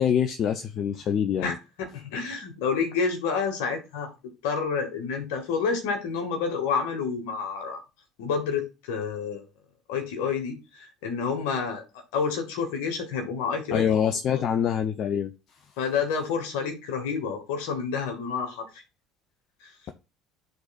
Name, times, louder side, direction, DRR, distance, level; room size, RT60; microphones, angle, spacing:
voice 1, 0.0-1.6 13.7-15.3, left 8 dB, 50° left, 0.6 m, -25 dB
voice 2, 1.4-4.1 4.4-7.8 8.2-9.4 9.9-13.8 14.3-14.4 15.8-18.8 19.6-19.7, left 5 dB, 75° left, 1.9 m, -29 dB
12.0 x 4.1 x 2.5 m
hypercardioid pair, 70°, 0 cm